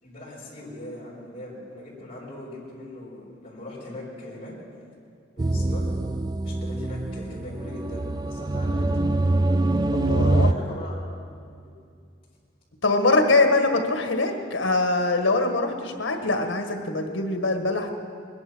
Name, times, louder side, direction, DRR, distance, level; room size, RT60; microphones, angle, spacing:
voice 1, 0.0-4.5 5.4-5.8 6.4-9.4 10.2-11.0, left 1 dB, 30° left, -7 dB, 5.2 m, -40 dB
sound 1, 5.4-10.5, right 2 dB, 20° right, 0.3 m, -24 dB
voice 2, 9.9-10.5 12.8-18.0, left 2 dB, 85° left, 5 dB, 1.6 m, -23 dB
21.0 x 11.0 x 6.2 m, 2.3 s
head